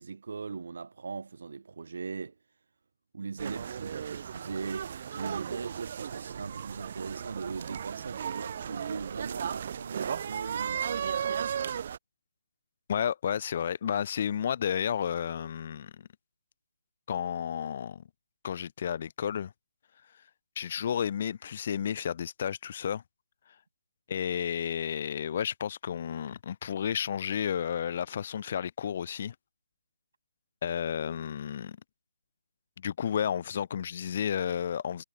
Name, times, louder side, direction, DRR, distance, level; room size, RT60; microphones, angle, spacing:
voice 1, 0.0-2.4 3.1-11.2, right 4 dB, 60° right, 1.8 m, -39 dB
sound 1, 3.4-12.0, right 8 dB, 40° right, 0.3 m, -35 dB
voice 2, 12.9-16.1 17.1-18.0 18.4-19.5 20.6-23.0 24.1-29.3 30.6-31.8 32.8-35.0, left 8 dB, 40° left, 0.4 m, -32 dB
figure-of-eight pair, 150°, 0 cm